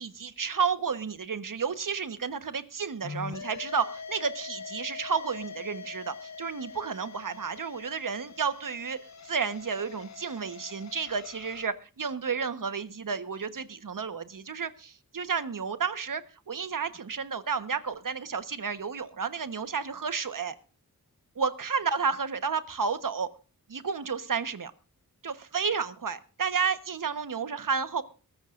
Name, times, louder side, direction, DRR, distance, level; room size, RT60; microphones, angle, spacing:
voice 1, 0.0-9.0 9.2-16.2 16.5-20.5 21.3-23.3 23.7-24.7 25.2-28.0, right 6 dB, 65° right, 1.3 m, -31 dB
sound 1, 3.0-11.7, left 5 dB, 50° left, 0.9 m, -43 dB
22.5 x 14.0 x 2.6 m
wide cardioid pair, 90°, 35 cm